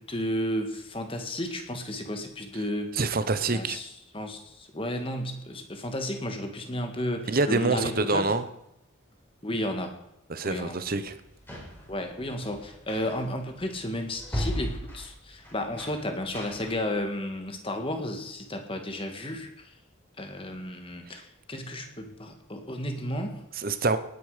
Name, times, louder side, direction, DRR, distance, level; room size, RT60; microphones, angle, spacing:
voice 1, 0.0-2.9 3.5-8.3 9.4-10.0 10.4-10.8 11.9-19.7 20.2-23.4, left 1 dB, 25° left, 1.9 m, -33 dB
voice 2, 2.9-3.8 7.3-8.4 10.3-11.1 23.6-24.0, right 3 dB, 45° right, 1.0 m, -26 dB
sound 1, 10.9-16.9, equal, 10° left, 5.6 m, -37 dB
18.5 x 10.0 x 5.1 m
head